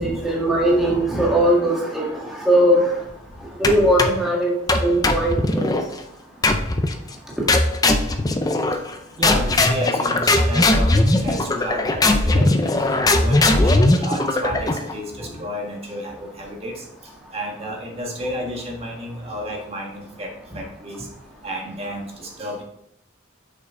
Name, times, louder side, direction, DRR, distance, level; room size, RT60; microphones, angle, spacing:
voice 1, 0.0-2.9 3.6-5.8 11.2-11.3, right 1 dB, ahead, -4 dB, 1.7 m, -19 dB
sound 1, 3.6-4.3 4.7-5.9 6.4-7.0 7.5-8.9 9.2-14.9, left 2 dB, 20° left, 0.5 m, -19 dB
voice 2, 9.2-16.8 17.3-21.1 21.4-22.6, equal, 30° right, 0 dB, 1.5 m, -31 dB
6.5 x 5.6 x 3.7 m, 0.76 s
head